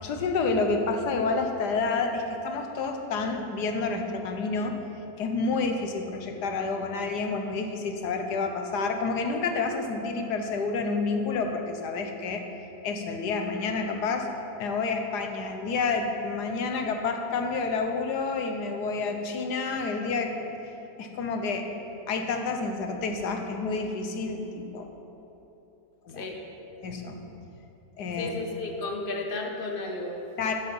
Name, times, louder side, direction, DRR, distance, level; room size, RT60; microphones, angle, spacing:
voice 1, 0.0-4.8 5.2-12.4 12.8-14.3 14.6-20.6 21.0-21.7 22.1-24.9 26.0-26.3 26.8-27.2 28.0-28.3 30.4-30.5, left 4 dB, 80° left, 4 dB, 1.5 m, -29 dB
voice 2, 28.2-30.2, left 2 dB, 35° left, 1 dB, 1.2 m, -33 dB
12.0 x 7.6 x 5.4 m, 2.9 s
omnidirectional pair, 1.8 m